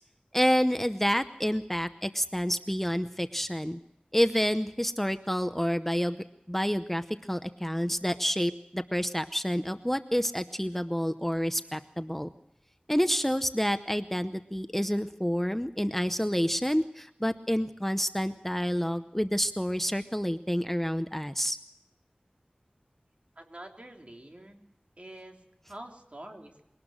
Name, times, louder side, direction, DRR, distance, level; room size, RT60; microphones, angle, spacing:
voice 1, 0.3-3.8 4.1-12.3 12.9-21.6, equal, 10° left, 10 dB, 0.8 m, -28 dB
voice 2, 23.4-24.6 25.0-26.6, right 1 dB, 45° right, 3 dB, 3.3 m, -46 dB
22.5 x 18.5 x 6.4 m, 0.83 s
wide cardioid pair, 45°, 3 cm